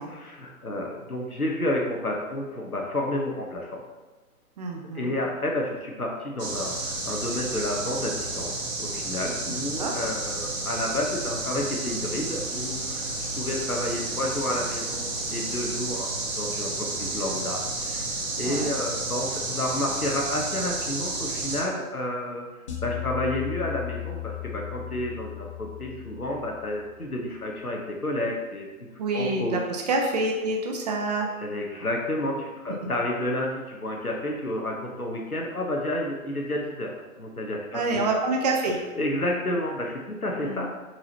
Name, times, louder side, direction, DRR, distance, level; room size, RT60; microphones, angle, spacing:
voice 1, 0.1-3.8 4.9-13.1 13.3-16.1 16.4-18.1 18.4-22.4 22.8-28.7 29.1-29.6 31.4-38.2 39.0-40.7, left 1 dB, 90° left, 0 dB, 1.3 m, -30 dB
voice 2, 4.6-5.1 9.5-9.9 18.4-18.7 29.0-31.3 37.7-38.8 40.4-40.7, right 2 dB, 30° right, 1 dB, 0.7 m, -27 dB
sound 1, 6.4-21.6, right 2 dB, 65° right, 1.7 m, -31 dB
sound 2, 22.7-27.0, left 16 dB, 25° left, 0.5 m, -36 dB
7.7 x 4.8 x 3.0 m, 1.2 s
figure-of-eight pair, 125°, 43 cm